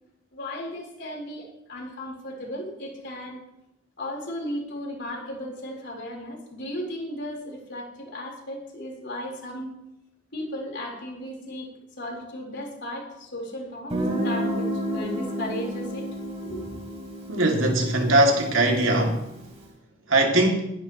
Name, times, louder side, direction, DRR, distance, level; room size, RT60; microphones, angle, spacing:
voice 1, 0.3-3.4 4.0-9.7 10.3-11.7 12.0-16.9, left 1 dB, 60° left, 4.1 m, -35 dB
Guitar, 13.9-19.5, equal, 30° right, 3.3 m, -31 dB
voice 2, 17.3-19.2 20.1-20.7, right 1 dB, 85° right, 2.5 m, -21 dB
20.5 x 10.5 x 3.1 m
head